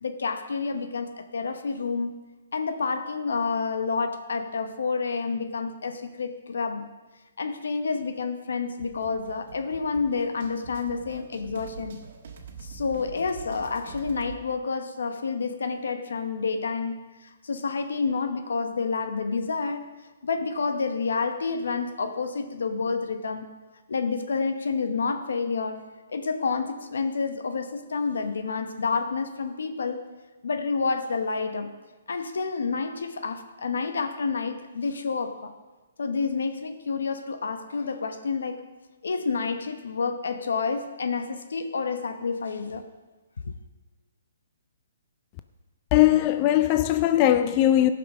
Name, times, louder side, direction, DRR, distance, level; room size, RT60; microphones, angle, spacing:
voice 1, 0.0-2.2 2.5-7.0 7.4-12.0 12.6-19.9 20.2-23.5 23.9-25.8 26.1-30.0 30.4-31.8 32.1-35.5 36.0-38.6 39.0-42.8 43.4-43.5, left 4 dB, 90° left, 1.0 m, -29 dB
sound 1, 8.8-14.4, right 5 dB, 50° right, 1.4 m, -44 dB
voice 2, 45.9-47.9, left 13 dB, 25° left, 0.3 m, -20 dB
15.0 x 5.9 x 6.2 m
hypercardioid pair, 170°, 0 cm